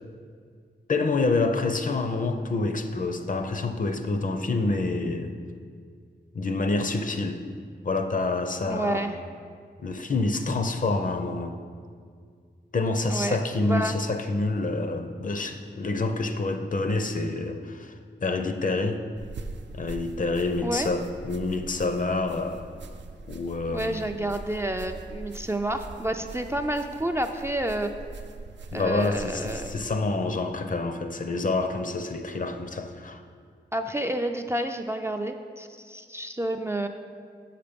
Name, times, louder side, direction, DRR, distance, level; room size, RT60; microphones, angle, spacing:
voice 1, 0.9-5.3 6.3-7.5 7.8-9.1 9.8-11.6 12.7-17.9 18.2-19.0 19.7-22.7 23.3-24.0 28.7-33.2, left 3 dB, 45° left, 7 dB, 0.6 m, -27 dB
voice 2, 8.7-9.2 13.1-14.0 20.6-20.9 23.7-27.9 28.7-29.7 33.7-36.9, right 1 dB, 15° right, 5 dB, 0.3 m, -29 dB
sound 1, 19.2-29.9, right 3 dB, 80° right, 0.5 m, -42 dB
6.6 x 5.8 x 5.1 m, 2.1 s
wide cardioid pair, 70°, 19 cm